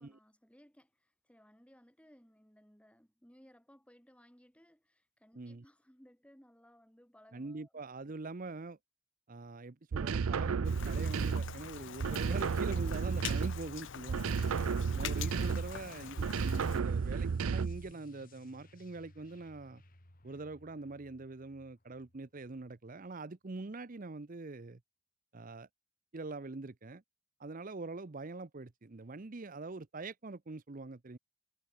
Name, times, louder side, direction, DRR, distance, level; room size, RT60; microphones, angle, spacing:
voice 1, 0.0-7.7, equal, 5° left, 4.4 m, -62 dB
voice 2, 7.3-8.8 9.3-14.3 14.9-19.8 20.2-24.8 25.3-25.7 26.1-27.0 27.4-31.2, right 3 dB, 40° right, 0.7 m, -44 dB
sound 1, 9.9-11.6 12.0-13.7 14.1-15.8 16.2-17.9, right 5 dB, 75° right, 0.5 m, -33 dB
Rain, 10.6-16.8, left 8 dB, 60° left, 0.8 m, -45 dB
sound 2, 15.2-23.2, left 2 dB, 40° left, 3.0 m, -60 dB
head